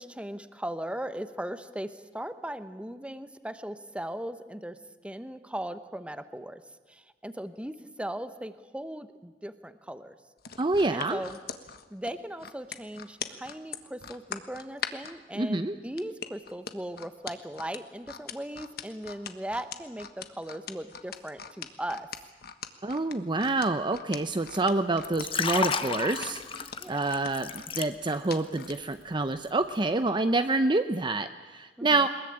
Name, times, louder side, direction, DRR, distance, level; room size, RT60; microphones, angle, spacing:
voice 1, 0.0-4.8 5.0-6.6 6.9-10.1 10.9-11.4 11.9-22.1 26.8-27.2 31.8-32.1, right 1 dB, 5° right, 11 dB, 1.0 m, -38 dB
sound 1, 10.4-15.1 16.0-28.8 29.2-29.4, left 7 dB, 60° left, 1.4 m, -40 dB
voice 2, 10.6-11.2 15.3-15.8 22.8-26.4 26.9-32.1, right 2 dB, 25° right, 9 dB, 0.7 m, -27 dB
Liquid, 25.0-28.3 28.6-28.9, left 5 dB, 30° left, 1.0 m, -32 dB
22.0 x 21.0 x 8.8 m, 1.3 s
head